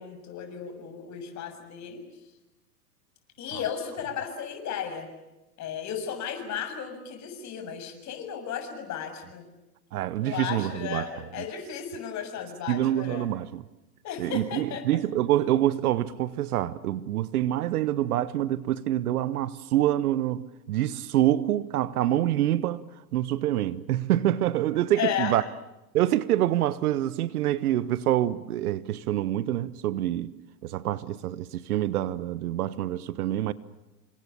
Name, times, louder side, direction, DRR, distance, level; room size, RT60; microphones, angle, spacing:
voice 1, 0.0-2.0 3.4-5.1 5.6-9.5 10.2-13.3 14.0-14.8 25.0-25.4, left 8 dB, 35° left, 7.1 m, -34 dB
voice 2, 9.9-11.1 12.7-13.6 14.2-22.8 23.1-25.4 25.9-30.3 30.6-33.5, right 13 dB, 60° right, 1.4 m, -26 dB
29.5 x 26.0 x 7.0 m
hypercardioid pair, 105°, 50 cm